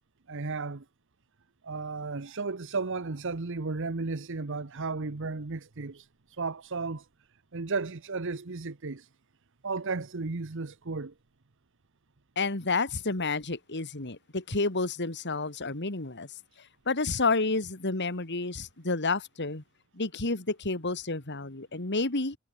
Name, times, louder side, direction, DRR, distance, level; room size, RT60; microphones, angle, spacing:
voice 1, 0.3-0.8 1.6-6.1 6.4-7.1 7.5-9.1 9.6-11.1, right 4 dB, 60° right, 1.0 m, -34 dB
voice 2, 12.4-16.3 16.6-19.6 20.0-22.4, left 3 dB, 55° left, 2.6 m, -30 dB
head